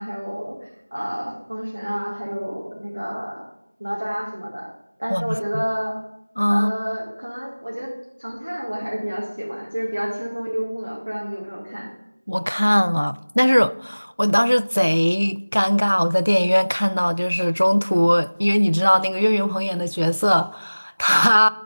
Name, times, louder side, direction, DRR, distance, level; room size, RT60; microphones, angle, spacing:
voice 1, 0.0-3.4 3.8-4.7 5.0-6.0 6.5-7.9 8.2-11.9, equal, 55° right, 2.0 m, -29 dB
voice 2, 5.1-5.6 6.4-6.7 12.3-21.5, equal, 85° left, 0.4 m, -19 dB
11.0 x 4.6 x 6.2 m
figure-of-eight pair, 175°, 0 cm